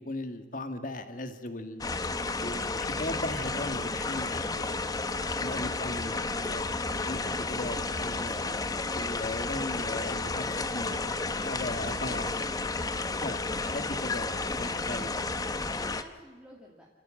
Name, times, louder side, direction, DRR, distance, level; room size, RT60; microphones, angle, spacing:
voice 1, 0.0-1.9 2.4-4.8 5.4-8.6 8.9-12.5 13.2-15.1, left 1 dB, 50° left, 8 dB, 1.9 m, -38 dB
sound 1, 1.8-16.0, left 3 dB, 20° left, 0.9 m, -32 dB
sound 2, 2.8-8.3 8.7-8.8 9.2-9.7 9.9-10.0 10.3-10.7 11.2-11.3 11.5-13.4 13.8-13.9 14.2-14.7 14.9-15.7, right 1 dB, 60° right, 1.3 m, -51 dB
voice 2, 12.5-13.2 15.2-16.9, equal, 5° right, -3 dB, 2.5 m, -52 dB
30.0 x 14.5 x 7.6 m, 1.5 s
head